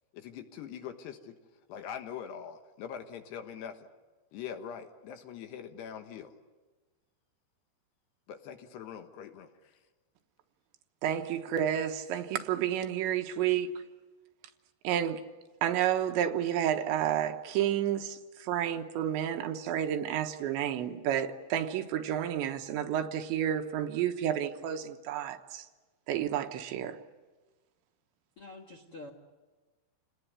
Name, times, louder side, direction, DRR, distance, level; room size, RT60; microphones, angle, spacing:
voice 1, 0.1-1.3 1.7-3.9 4.3-6.3 8.3-9.5, left 8 dB, 70° left, 3.2 m, -43 dB
voice 2, 11.0-13.7 14.8-15.2 15.6-25.6 26.1-27.0, right 10 dB, 80° right, 3.3 m, -30 dB
voice 3, 28.4-29.1, left 2 dB, 55° left, 1.7 m, -46 dB
28.0 x 19.5 x 9.5 m
omnidirectional pair, 5.3 m